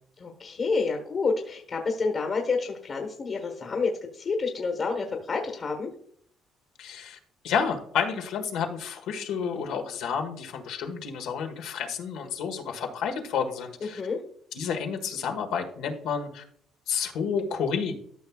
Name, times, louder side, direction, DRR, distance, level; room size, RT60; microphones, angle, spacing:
voice 1, 0.2-5.9 13.8-14.2, left 4 dB, 40° left, 2 dB, 1.3 m, -29 dB
voice 2, 6.8-7.2 7.4-14.0 14.5-16.4 16.9-17.9, left 6 dB, 85° left, 3 dB, 1.4 m, -30 dB
13.0 x 5.9 x 2.3 m, 0.62 s
cardioid pair, 110°, 0 cm